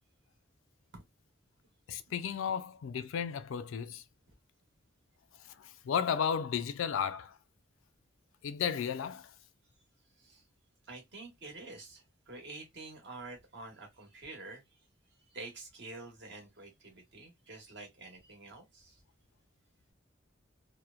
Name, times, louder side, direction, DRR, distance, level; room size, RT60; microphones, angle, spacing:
voice 1, 1.9-4.0 5.4-7.4 8.4-9.3, left 7 dB, 85° left, 0.3 m, -34 dB
voice 2, 10.1-10.4 10.8-19.0, right 3 dB, 65° right, 1.1 m, -48 dB
2.8 x 2.0 x 2.3 m
head